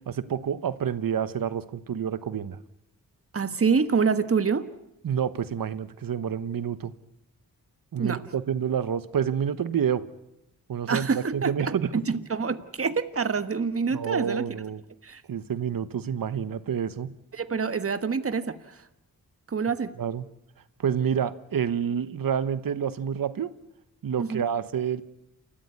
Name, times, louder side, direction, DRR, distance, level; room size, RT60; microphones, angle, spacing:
voice 1, 0.1-2.6 5.0-6.9 7.9-10.0 10.7-11.9 13.9-14.8 15.3-17.1 20.0-20.2 20.8-23.5 24.0-25.0, right 8 dB, 70° right, 14 dB, 1.2 m, -28 dB
voice 2, 3.3-4.7 8.0-8.2 10.9-14.6 15.0-15.2 17.3-18.8 19.5-19.9 24.2-24.4, right 5 dB, 40° right, 11 dB, 1.4 m, -26 dB
29.0 x 14.0 x 9.5 m, 0.85 s
cardioid pair, 75°, 35 cm